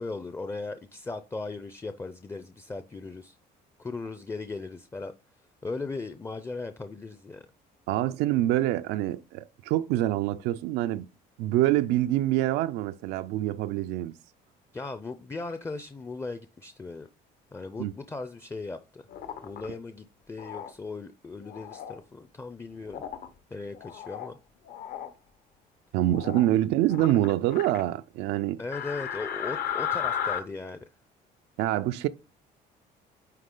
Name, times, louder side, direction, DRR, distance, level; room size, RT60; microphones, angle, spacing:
voice 1, 0.0-3.4 3.8-5.1 5.6-7.5 14.7-17.1 17.5-19.0 19.4-23.1 23.5-24.4 28.6-30.9, left 3 dB, 15° left, 0.5 m, -38 dB
voice 2, 7.9-11.1 11.4-14.1 17.8-17.9 25.9-28.6 31.6-32.1, right 14 dB, 90° right, 0.4 m, -26 dB
sound 1, 19.1-19.7 20.4-20.7 21.4-22.0 22.9-23.3 23.7-24.3 24.7-25.1 26.1-26.5 26.9-27.8 28.7-30.4, left 9 dB, 60° left, 1.0 m, -34 dB
9.2 x 3.2 x 3.8 m
cardioid pair, 110°, 17 cm